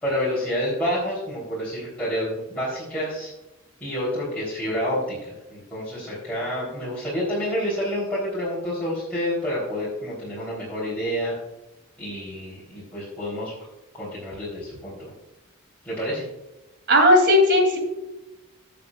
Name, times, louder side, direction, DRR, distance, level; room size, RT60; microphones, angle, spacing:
voice 1, 0.0-3.3 3.8-11.3 12.0-13.5 13.9-15.1 15.8-16.3, equal, 5° left, -9 dB, 3.4 m, -28 dB
voice 2, 16.9-17.8, left 1 dB, 50° right, 2 dB, 2.8 m, -16 dB
16.5 x 7.1 x 2.4 m, 1.0 s
head